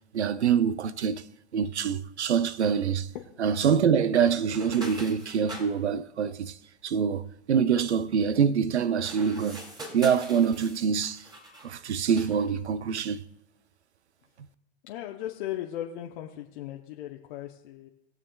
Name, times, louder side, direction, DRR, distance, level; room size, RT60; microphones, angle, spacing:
voice 1, 0.1-1.2 1.5-3.1 3.4-6.6 6.8-9.6 9.9-11.2 11.6-13.2, right 7 dB, 80° right, 0.6 m, -25 dB
sound 1, 4.5-5.7 8.9-11.7 12.1-12.4, equal, 10° right, 2.2 m, -43 dB
voice 2, 14.8-17.9, left 12 dB, 50° left, 0.9 m, -37 dB
22.0 x 7.3 x 2.3 m
hypercardioid pair, 105°, 33 cm